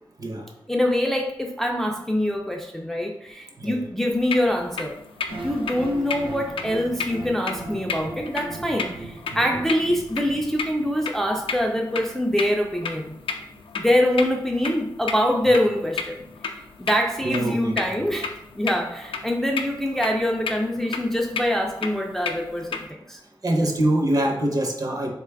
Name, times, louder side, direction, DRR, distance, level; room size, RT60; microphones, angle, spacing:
voice 1, 0.7-4.9 5.3-13.1 13.7-16.2 16.5-23.2, left 1 dB, 5° left, 1 dB, 0.3 m, -24 dB
sound 1, 4.1-22.9, left 5 dB, 80° left, 0.4 m, -34 dB
sound 2, 5.3-11.3, right 2 dB, 85° right, 0.5 m, -38 dB
voice 2, 17.2-17.8 23.4-25.1, right 1 dB, 45° right, 2 dB, 0.6 m, -24 dB
3.8 x 2.2 x 3.3 m, 0.81 s
wide cardioid pair, 115°, 9 cm